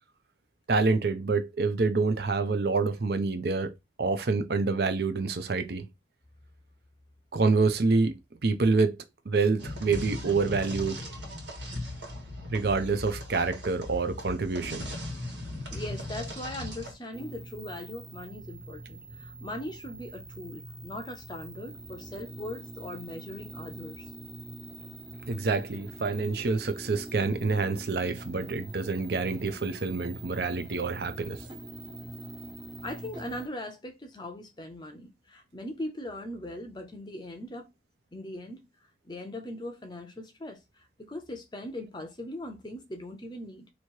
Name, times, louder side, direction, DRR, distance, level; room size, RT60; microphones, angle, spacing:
voice 1, 0.7-3.7 4.0-5.9 7.3-9.0 9.3-11.0 12.5-14.9 25.3-31.4, right 4 dB, 60° right, 0.6 m, -27 dB
sound 1, 9.6-16.9, left 1 dB, 85° right, 1.8 m, -38 dB
voice 2, 15.7-24.1 32.8-37.7 38.1-38.6 39.0-43.7, left 1 dB, 25° left, 0.6 m, -40 dB
sound 2, 17.1-33.5, right 2 dB, 25° right, 0.8 m, -44 dB
3.0 x 2.8 x 4.5 m
head